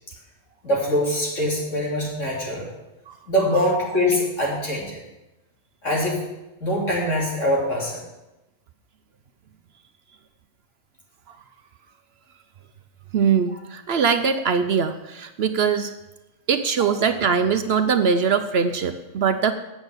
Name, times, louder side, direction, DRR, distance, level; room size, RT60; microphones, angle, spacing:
voice 1, 0.6-2.6 3.3-5.0 5.8-6.2 6.6-8.0, left 1 dB, 70° left, -3 dB, 3.4 m, -23 dB
voice 2, 13.1-15.9 16.5-19.5, right 6 dB, 60° right, 10 dB, 0.8 m, -21 dB
9.0 x 7.1 x 8.0 m, 0.98 s
omnidirectional pair, 1.3 m